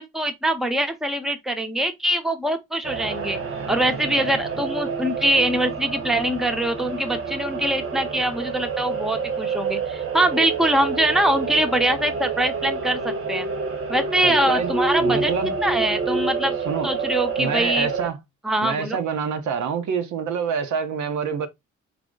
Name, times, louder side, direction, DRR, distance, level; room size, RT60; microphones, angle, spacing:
voice 1, 0.0-3.4 3.7-13.5 13.9-15.3 15.6-16.6 16.8-17.9 18.4-19.0, right 1 dB, ahead, 0.7 m, -23 dB
sound 1, 2.8-18.1, right 4 dB, 45° right, 1.0 m, -28 dB
voice 2, 14.2-15.5 16.7-16.9 17.4-18.2 18.6-21.5, right 6 dB, 75° right, 0.9 m, -26 dB
4.9 x 2.1 x 3.7 m
cardioid pair, 90°, 30 cm